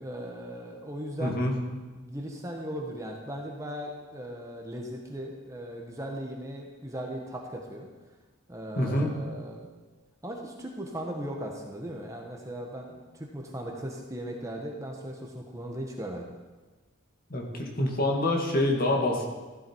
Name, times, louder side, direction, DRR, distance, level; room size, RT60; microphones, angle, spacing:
voice 1, 0.0-1.4 1.9-7.9 8.5-9.7 10.2-16.3, equal, 15° right, 1 dB, 1.4 m, -38 dB
voice 2, 1.2-1.5 8.8-9.1 17.3-19.3, left 1 dB, 45° left, 0 dB, 2.1 m, -26 dB
15.0 x 11.0 x 4.6 m, 1.3 s
head